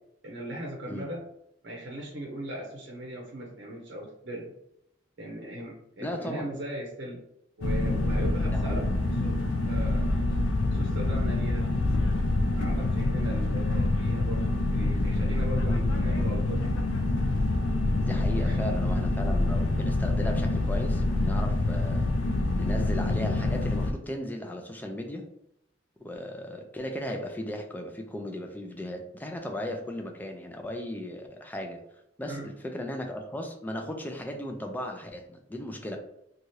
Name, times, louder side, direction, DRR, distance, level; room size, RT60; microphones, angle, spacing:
voice 1, 0.2-1.2 1.6-4.5 5.2-7.2 7.6-8.9 9.2-9.4 9.6-10.1 10.7-11.7 12.6-16.9 18.4-18.7 32.3-32.5, right 1 dB, 65° right, -2 dB, 0.7 m, -38 dB
voice 2, 6.0-6.5 8.5-8.9 15.6-15.8 18.0-22.1 22.6-25.3 26.0-31.8 32.2-36.0, left 1 dB, 10° left, 3 dB, 0.4 m, -36 dB
sound 1, 7.6-23.9, left 2 dB, 70° left, 0.4 m, -26 dB
2.7 x 2.3 x 3.1 m, 0.77 s
head